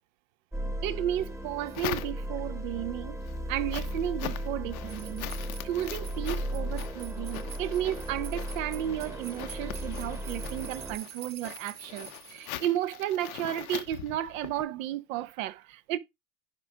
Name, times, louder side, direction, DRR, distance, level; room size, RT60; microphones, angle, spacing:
sound 1, 0.5-11.0, equal, 5° right, 1.1 m, -36 dB
voice 1, 0.8-3.2 3.5-5.2 5.6-16.0, right 12 dB, 70° right, 1.1 m, -33 dB
sound 2, 1.1-2.6 3.0-14.6, left 12 dB, 80° left, 1.0 m, -42 dB
sound 3, 4.9-12.5, right 8 dB, 40° right, 1.9 m, -47 dB
11.0 x 4.7 x 3.7 m
hypercardioid pair, 105°, 42 cm